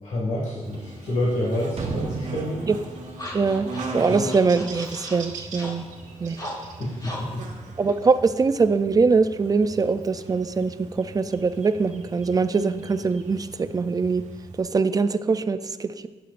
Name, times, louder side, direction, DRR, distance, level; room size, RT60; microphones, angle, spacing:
voice 1, 0.0-2.7 4.1-4.2 6.8-7.5, left 1 dB, 85° left, -5 dB, 2.1 m, -28 dB
Buzz, 0.6-14.6, right 3 dB, 80° right, 1.2 m, -39 dB
sound 1, 1.8-4.6 4.9-5.0, right 4 dB, 55° right, 0.8 m, -34 dB
sound 2, 2.3-8.8, left 1 dB, 30° left, 1.7 m, -41 dB
voice 2, 3.3-3.7 3.9-5.9 6.2-6.4 7.8-14.2 14.6-16.1, right 4 dB, 30° right, 11 dB, 0.4 m, -22 dB
12.5 x 8.0 x 2.5 m, 1.3 s
wide cardioid pair, 105°, 12 cm